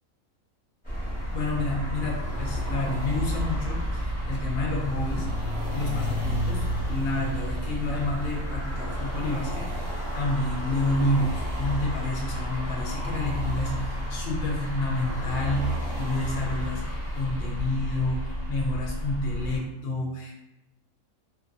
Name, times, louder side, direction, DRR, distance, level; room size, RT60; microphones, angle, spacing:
sound 1, 0.8-19.6, equal, 5° left, 0.8 m, -31 dB
voice 1, 1.3-5.3 5.7-9.7 10.1-16.8 17.1-18.2 18.5-20.3, left 2 dB, 65° left, -1 dB, 0.6 m, -29 dB
2.5 x 2.4 x 2.6 m, 0.94 s
omnidirectional pair, 1.5 m